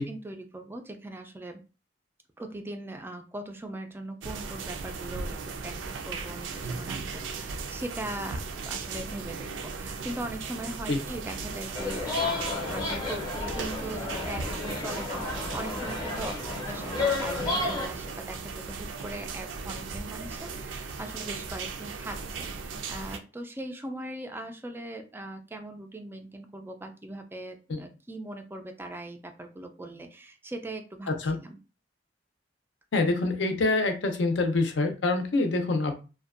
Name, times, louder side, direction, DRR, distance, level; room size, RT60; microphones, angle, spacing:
voice 1, 0.0-1.6 2.4-16.4 16.7-31.6, right 1 dB, 10° right, 5 dB, 0.3 m, -40 dB
sound 1, 4.2-23.2, right 4 dB, 90° right, 0.4 m, -37 dB
sound 2, 11.7-17.9, left 3 dB, 20° left, 0.6 m, -32 dB
voice 2, 32.9-35.9, left 2 dB, 70° left, 6 dB, 0.5 m, -25 dB
2.6 x 2.2 x 2.4 m, 0.33 s
head